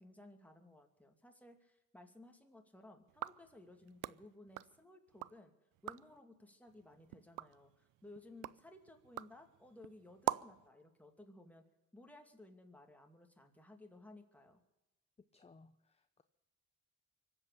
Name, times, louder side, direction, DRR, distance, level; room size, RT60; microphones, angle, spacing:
voice 1, 0.0-5.5 5.8-11.6 11.9-14.6, left 2 dB, 5° left, 3 dB, 2.5 m, -58 dB
sound 1, 3.1-5.4 5.7-6.2 6.7-10.7, right 16 dB, 85° right, 0.5 m, -45 dB
voice 2, 15.3-16.2, left 3 dB, 20° left, 10 dB, 0.8 m, -63 dB
24.5 x 8.2 x 7.0 m, 0.99 s
cardioid pair, 90°, 30 cm